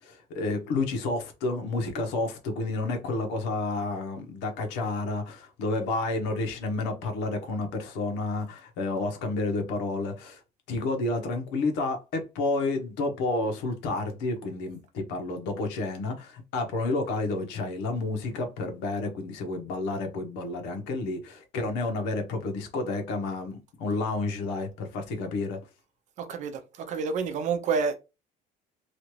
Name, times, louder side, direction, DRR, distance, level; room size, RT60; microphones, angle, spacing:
voice 1, 0.0-10.4 10.7-25.6, left 3 dB, 85° left, 1.0 m, -30 dB
voice 2, 26.2-28.0, right 5 dB, 45° right, 0.6 m, -29 dB
3.1 x 2.5 x 3.1 m
cardioid pair, 160°, 17 cm